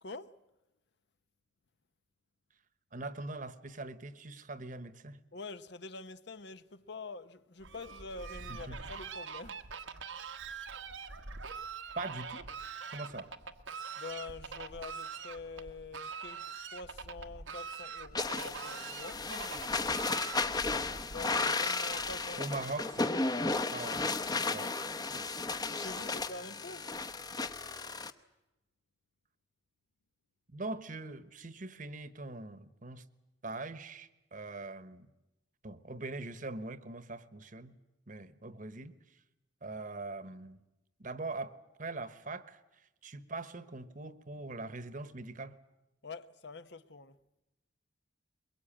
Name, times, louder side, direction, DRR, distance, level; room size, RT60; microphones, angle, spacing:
voice 1, 0.0-0.3 5.3-9.7 14.0-19.3 21.1-22.5 25.7-26.9 46.0-47.2, left 3 dB, 60° left, 0.9 m, -46 dB
voice 2, 2.9-5.2 8.5-8.8 11.9-12.5 12.9-13.3 22.4-23.2 23.7-24.2 24.5-24.8 25.1-25.5 30.5-33.0 33.4-35.1 35.6-37.8 38.1-38.9 39.6-40.6 41.0-42.6 43.0-45.5, right 2 dB, 45° right, 1.1 m, -42 dB
Fowl, 7.6-22.4, right 5 dB, 90° right, 1.4 m, -44 dB
sound 1, 18.1-28.1, left 3 dB, 20° left, 0.9 m, -34 dB
22.5 x 22.5 x 8.8 m
head